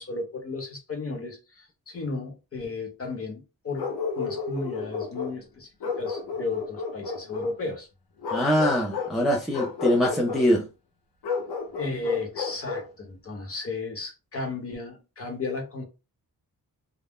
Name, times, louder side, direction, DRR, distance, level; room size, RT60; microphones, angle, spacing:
voice 1, 0.0-5.7 6.0-7.9 11.7-15.8, left 3 dB, 40° left, 0.9 m, -34 dB
Bark, 3.8-5.4 5.8-7.6 8.2-9.2 9.5-10.5 11.2-12.9, left 5 dB, 90° left, 0.8 m, -32 dB
voice 2, 8.3-10.6, equal, ahead, 0.4 m, -23 dB
2.3 x 2.0 x 3.6 m
wide cardioid pair, 140°, 37 cm